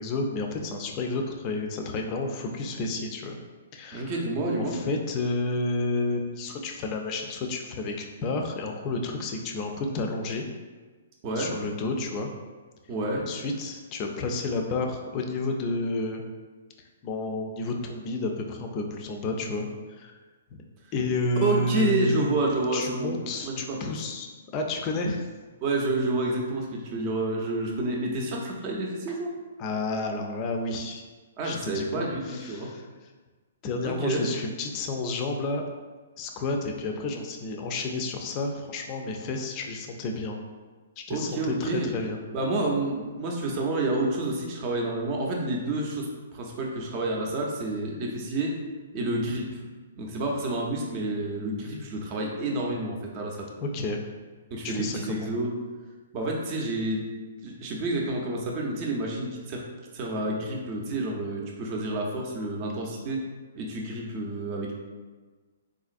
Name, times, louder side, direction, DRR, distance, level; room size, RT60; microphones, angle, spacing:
voice 1, 0.0-3.4 3.7-4.2 4.5-10.5 11.3-12.3 13.3-16.2 17.0-19.7 20.0-20.1 20.5-20.6 20.9-22.3 22.7-24.3 24.5-25.3 29.6-31.0 31.4-32.8 33.6-35.6 36.2-40.4 41.0-42.2 53.6-54.0 54.6-55.3, left 2 dB, 30° left, 2 dB, 0.4 m, -30 dB
voice 2, 3.9-4.8 11.2-11.5 12.9-13.2 21.4-23.9 25.6-29.3 31.4-32.7 33.8-34.2 41.1-41.9 42.3-48.6 48.9-49.6 50.0-53.5 54.5-55.5 56.1-57.0 57.4-59.6 59.9-63.2 63.5-64.7, right 2 dB, 35° right, -1 dB, 0.6 m, -29 dB
3.8 x 2.4 x 2.5 m, 1.4 s
hypercardioid pair, 135°, 0 cm